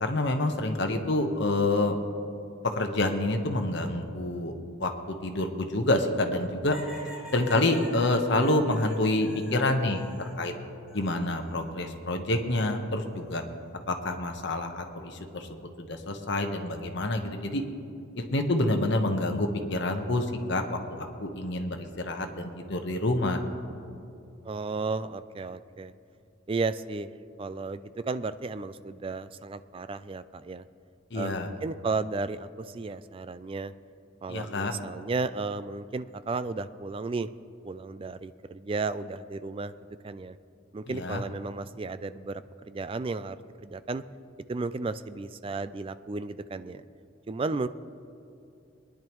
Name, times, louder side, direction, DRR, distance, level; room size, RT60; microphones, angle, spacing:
voice 1, 0.0-2.0 2.6-4.5 4.8-6.8 7.3-10.5 10.9-13.4 13.9-15.5 15.8-17.6 18.2-23.4 31.1-31.5 34.3-34.7 40.9-41.2, left 2 dB, 60° left, 5 dB, 1.1 m, -27 dB
sound 1, 6.7-10.4 10.9-11.7 13.0-13.5, equal, 5° right, 2.2 m, -47 dB
voice 2, 24.4-25.9 26.5-30.6 31.1-33.7 34.2-37.3 37.6-39.8 40.0-40.4 40.7-44.0 44.5-46.8 47.3-47.7, right 3 dB, 25° right, 13 dB, 0.3 m, -34 dB
21.5 x 10.5 x 3.1 m, 2.6 s
head